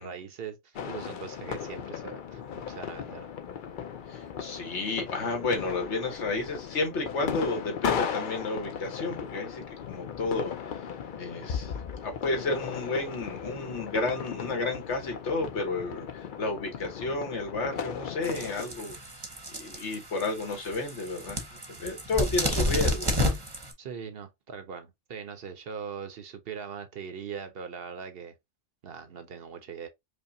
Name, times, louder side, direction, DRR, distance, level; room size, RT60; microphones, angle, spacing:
voice 1, 0.0-3.3 4.5-4.6 23.8-28.3 28.8-29.9, right 6 dB, 60° right, 0.8 m, -41 dB
sound 1, 0.7-18.7, left 7 dB, 55° left, 0.6 m, -36 dB
voice 2, 4.1-11.7 12.0-19.0 19.5-23.1, left 3 dB, 70° left, 1.4 m, -32 dB
sound 2, 18.2-23.7, equal, 25° right, 0.8 m, -31 dB
5.1 x 2.1 x 2.6 m
omnidirectional pair, 1.2 m